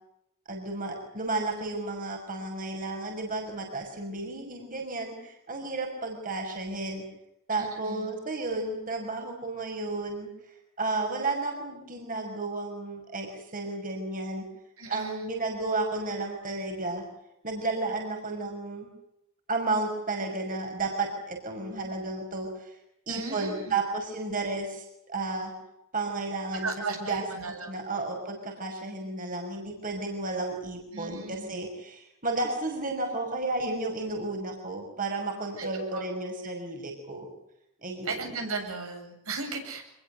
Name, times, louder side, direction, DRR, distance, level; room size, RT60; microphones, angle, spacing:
voice 1, 0.5-7.0 7.5-10.3 10.8-14.5 14.9-17.0 17.4-18.9 19.5-22.7 23.1-25.5 25.9-37.3 37.8-38.2, right 2 dB, 40° right, 2 dB, 6.1 m, -32 dB
voice 2, 7.5-8.1 14.8-15.3 23.1-23.7 26.6-27.8 30.9-31.5 35.6-36.0 38.0-39.8, right 3 dB, 75° right, 3 dB, 8.0 m, -36 dB
26.0 x 22.0 x 8.0 m, 0.82 s
head